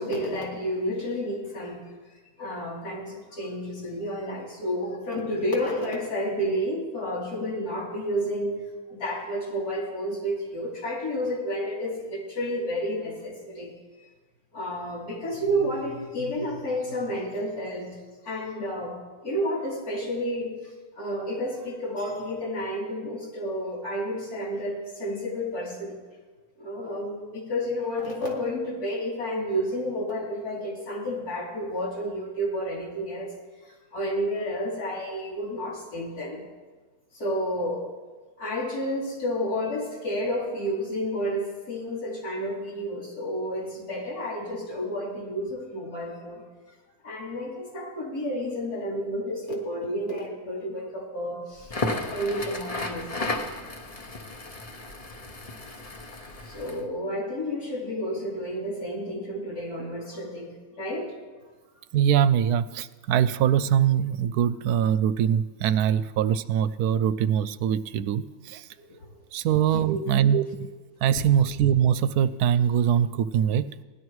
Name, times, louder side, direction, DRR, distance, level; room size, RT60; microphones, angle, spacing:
voice 1, 0.0-1.9 2.4-8.6 8.9-13.7 14.5-18.0 18.2-19.0 19.2-25.9 26.6-33.3 33.6-36.5 37.1-37.9 38.4-46.4 47.0-53.4 56.4-61.1 68.8-68.9 69.7-70.0 71.1-71.2, equal, 80° left, -2 dB, 3.4 m, -31 dB
Crackle, 51.6-56.8, left 2 dB, 30° left, 0.8 m, -34 dB
voice 2, 61.9-68.7 69.3-70.7 71.0-73.7, right 9 dB, 85° right, 15 dB, 1.1 m, -23 dB
17.0 x 11.0 x 4.7 m, 1.3 s
omnidirectional pair, 1.6 m